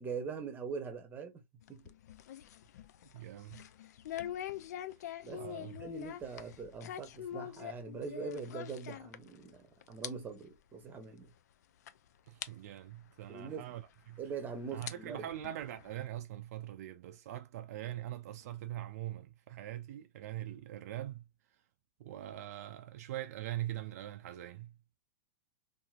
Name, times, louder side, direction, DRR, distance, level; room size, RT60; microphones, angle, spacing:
voice 1, 0.0-1.4 1.7-1.9 5.2-11.3 13.3-13.7 14.2-15.3, right 5 dB, 20° right, 0.9 m, -42 dB
sound 1, 1.6-9.6 9.8-10.1 10.4-10.5 11.3-11.4 11.9-12.0 12.4-12.5 13.9-14.0 14.6-16.0, left 11 dB, 75° left, 0.4 m, -44 dB
voice 2, 3.1-3.6 5.4-5.8 12.3-13.8 14.1-14.2 14.7-21.2 22.0-24.7, right 13 dB, 70° right, 0.4 m, -42 dB
2.8 x 2.6 x 2.4 m
hypercardioid pair, 120°, 9 cm